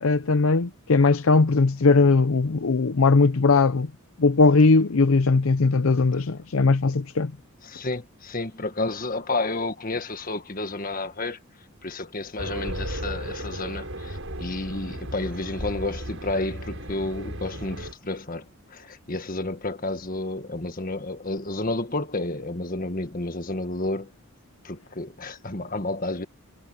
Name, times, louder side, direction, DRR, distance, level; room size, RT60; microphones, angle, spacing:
voice 1, 0.0-3.9 4.2-7.3, left 3 dB, 70° left, 0.6 m, -19 dB
voice 2, 7.6-11.4 11.8-18.5 18.7-24.1 24.6-26.3, left 2 dB, 40° left, 1.7 m, -31 dB
Race car auto racing, 12.4-17.9, right 1 dB, 60° right, 7.4 m, -35 dB
head